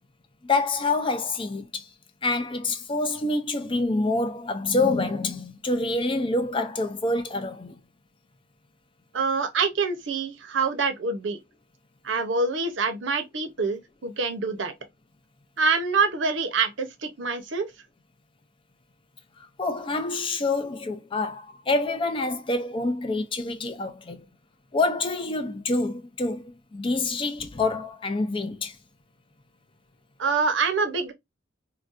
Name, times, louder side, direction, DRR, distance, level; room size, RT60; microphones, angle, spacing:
voice 1, 0.4-1.9 2.2-7.8 19.4-24.3 24.7-28.8, left 2 dB, 25° left, 0.5 m, -27 dB
voice 2, 9.1-11.4 12.0-14.7 15.6-17.7 30.2-31.1, right 4 dB, 65° right, 0.7 m, -26 dB
3.8 x 2.2 x 2.5 m
head